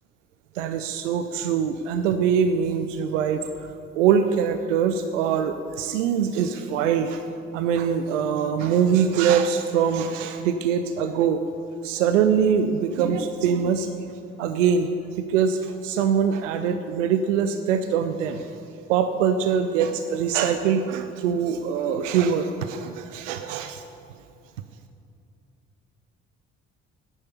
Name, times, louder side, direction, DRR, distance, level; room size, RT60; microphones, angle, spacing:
voice 1, 0.5-7.2 7.5-11.4 11.8-13.9 14.4-18.5 18.9-23.8, right 7 dB, 75° right, 8 dB, 0.7 m, -23 dB
10.0 x 10.0 x 8.1 m, 2.5 s
figure-of-eight pair, 50°, 37 cm